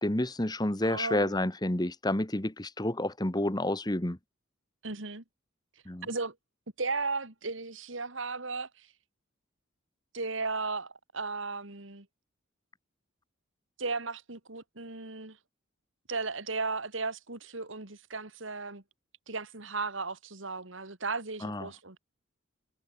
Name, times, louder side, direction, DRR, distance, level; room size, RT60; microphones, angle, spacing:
voice 1, 0.0-4.2 5.9-6.1 21.4-21.6, left 1 dB, 20° left, 1.4 m, -29 dB
voice 2, 0.8-1.5 4.8-5.2 6.0-6.3 6.8-8.9 10.1-12.1 13.8-15.4 16.1-18.8 19.3-22.0, right 3 dB, 70° right, 2.7 m, -35 dB
head